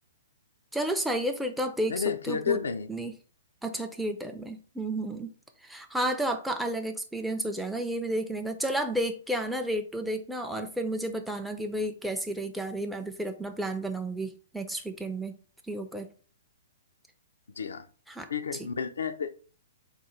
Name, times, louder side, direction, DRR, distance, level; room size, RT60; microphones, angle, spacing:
voice 1, 0.7-2.6 2.9-3.1 3.6-5.3 5.6-15.3 15.7-16.1 18.1-18.3, right 1 dB, 5° right, 4 dB, 0.4 m, -32 dB
voice 2, 1.9-2.9 17.5-17.9 18.3-19.4, left 7 dB, 70° left, 8 dB, 0.4 m, -31 dB
3.6 x 2.3 x 4.3 m, 0.39 s
figure-of-eight pair, 120°, 0 cm